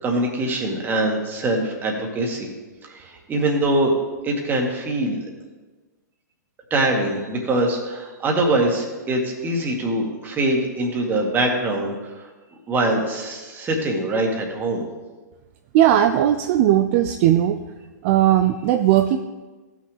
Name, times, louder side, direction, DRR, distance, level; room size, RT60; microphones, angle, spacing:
voice 1, 0.0-2.5 2.8-3.9 4.2-5.2 6.7-12.3 12.7-14.8, right 1 dB, 20° right, 0 dB, 1.9 m, -23 dB
voice 2, 15.7-17.6 18.0-19.2, right 12 dB, 45° right, 7 dB, 0.5 m, -17 dB
15.0 x 6.3 x 3.4 m, 1.3 s
hypercardioid pair, 120°, 10 cm